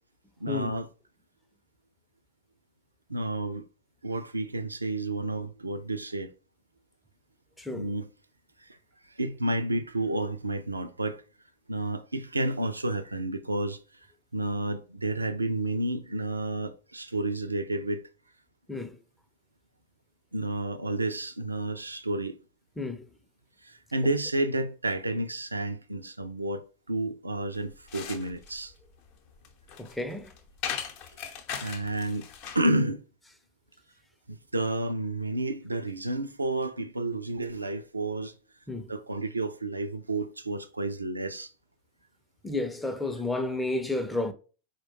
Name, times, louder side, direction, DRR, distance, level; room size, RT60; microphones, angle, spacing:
voice 1, 0.4-0.9 3.1-3.6 4.0-6.3 7.7-8.1 8.6-8.8 9.1-11.2 11.7-13.8 14.3-18.0 20.3-22.4 23.6-28.7 31.6-32.3 32.5-33.0 34.3-38.4 38.9-41.5, right 2 dB, 80° right, 0.3 m, -31 dB
voice 2, 7.6-7.9 18.7-19.0 22.8-23.0 29.8-30.3 38.7-38.9 42.4-44.3, left 2 dB, 5° left, 0.5 m, -31 dB
sound 1, 27.5-32.7, left 7 dB, 45° left, 0.7 m, -39 dB
4.5 x 2.1 x 3.0 m
figure-of-eight pair, 90°, 0 cm